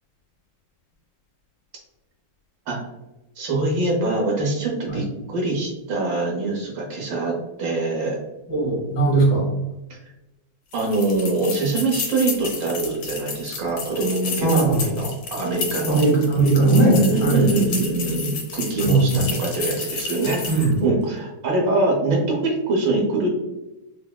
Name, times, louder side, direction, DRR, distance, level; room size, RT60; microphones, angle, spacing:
voice 1, 3.4-8.2 9.9-10.0 10.7-16.0 16.6-23.3, right 2 dB, 65° right, -1 dB, 1.5 m, -24 dB
voice 2, 8.5-9.5 14.4-14.9 15.9-17.5 18.8-19.3 20.5-20.8, right 2 dB, 55° left, -3 dB, 1.2 m, -19 dB
sound 1, 10.7-20.8, left 4 dB, 80° left, 1.5 m, -31 dB
5.4 x 2.0 x 2.2 m, 0.97 s
omnidirectional pair, 2.3 m